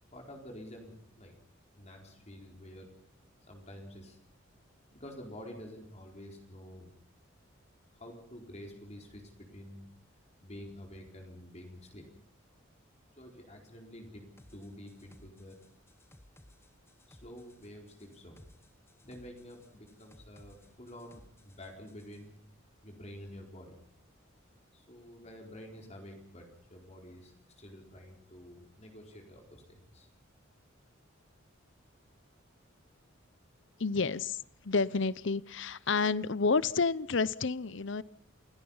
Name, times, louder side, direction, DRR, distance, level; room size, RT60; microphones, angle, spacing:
voice 1, 0.1-1.4 1.7-2.9 3.5-4.2 4.9-6.9 8.0-9.9 10.4-12.0 13.2-14.2 14.5-15.6 17.1-18.5 19.0-22.4 22.8-23.8 24.7-30.1, equal, 35° left, 1 dB, 4.4 m, -49 dB
sound 1, 14.4-22.2, left 1 dB, 10° left, 1.3 m, -61 dB
voice 2, 33.8-34.4 34.6-38.0, left 4 dB, 60° left, 19 dB, 0.8 m, -29 dB
29.0 x 17.5 x 5.6 m, 0.63 s
head